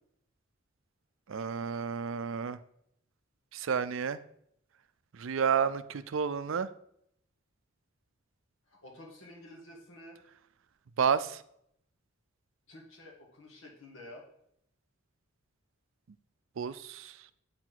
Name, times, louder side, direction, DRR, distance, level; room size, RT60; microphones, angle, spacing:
voice 1, 1.3-2.6 3.5-4.2 5.2-6.7 11.0-11.4 16.6-17.1, right 6 dB, 65° right, 14 dB, 0.4 m, -30 dB
voice 2, 8.7-10.2 12.7-14.2, left 1 dB, 65° left, -1 dB, 1.7 m, -50 dB
8.5 x 4.6 x 3.9 m, 0.71 s
head